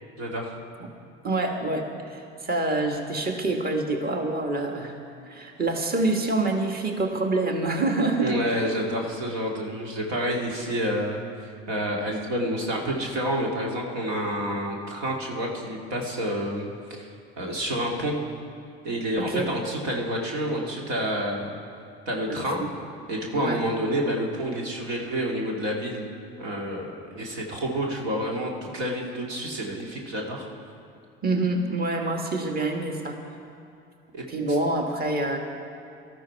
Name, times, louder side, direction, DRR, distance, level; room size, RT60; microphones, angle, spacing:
voice 1, 0.2-0.5 8.2-17.1 17.4-18.2 18.8-21.5 22.1-22.6 23.1-26.1 26.4-30.5 34.1-34.6, equal, 75° right, -1 dB, 2.4 m, -29 dB
voice 2, 1.2-5.0 5.2-8.5 19.2-19.5 22.3-22.7 23.3-23.6 31.2-33.2 34.3-35.4, right 2 dB, 30° right, 2 dB, 1.8 m, -26 dB
18.0 x 13.5 x 4.7 m, 2.5 s
hypercardioid pair, 70°, 31 cm